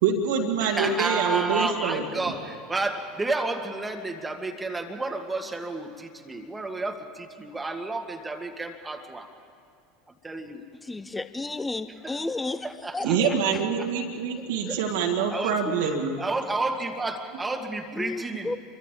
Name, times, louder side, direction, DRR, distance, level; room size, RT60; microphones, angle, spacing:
voice 1, 0.0-2.0 13.0-16.2, right 6 dB, 65° right, 0 dB, 2.0 m, -25 dB
voice 2, 0.6-9.3 10.2-10.6 12.0-12.2 12.6-13.9 14.6-15.9 16.2-18.6, right 2 dB, 10° right, 4 dB, 2.0 m, -31 dB
voice 3, 10.9-12.7 12.9-13.1 18.0-18.6, left 3 dB, 10° left, 14 dB, 0.8 m, -32 dB
28.5 x 24.0 x 3.8 m, 2.5 s
figure-of-eight pair, 75°, 0 cm